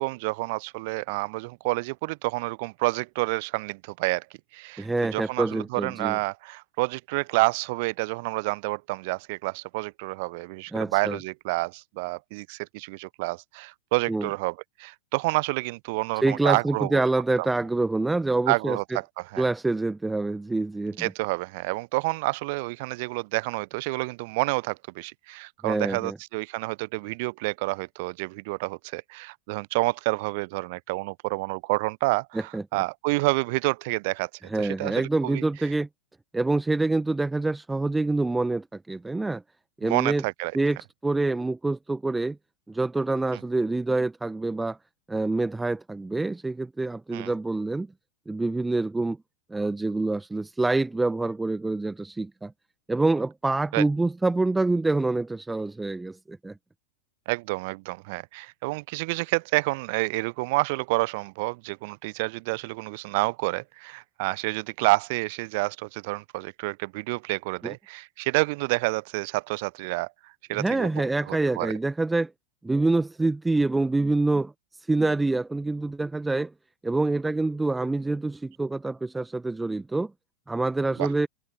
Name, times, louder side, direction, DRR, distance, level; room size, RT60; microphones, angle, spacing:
voice 1, 0.0-4.3 4.5-17.0 17.4-17.5 18.5-19.5 21.0-34.3 34.6-35.4 39.8-40.5 43.3-43.4 47.1-47.3 53.7-53.8 57.3-70.9 71.3-71.7 81.0-81.1, right 25 dB, 50° right, 0.8 m, -29 dB
voice 2, 4.8-6.2 10.7-11.2 14.1-14.3 16.2-18.8 19.4-21.1 25.6-26.2 32.3-32.6 34.5-35.9 36.3-39.4 39.8-40.2 40.5-40.8 41.0-42.4 42.7-44.8 45.1-47.9 48.3-49.2 49.5-52.5 52.9-56.5 67.6-67.7 70.5-72.3 72.6-76.5 76.8-80.1 80.5-81.3, right 2 dB, 10° right, 1.4 m, -26 dB
figure-of-eight pair, 90°, 0 cm